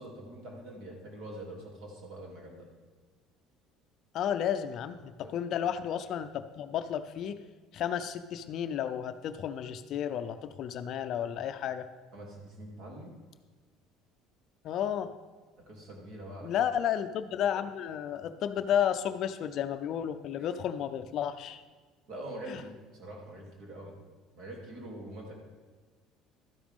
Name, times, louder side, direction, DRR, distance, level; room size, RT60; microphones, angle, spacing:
voice 1, 0.0-2.7 5.2-5.4 12.1-13.1 15.7-16.6 20.4-20.5 22.1-24.0 24.3-25.3, right 1 dB, 50° right, -1 dB, 2.9 m, -44 dB
voice 2, 4.1-7.4 7.7-11.9 14.6-15.1 16.4-21.6 22.5-22.6, left 9 dB, 45° left, 10 dB, 0.5 m, -32 dB
12.5 x 10.0 x 3.6 m, 1.4 s
cardioid pair, 165°, 0 cm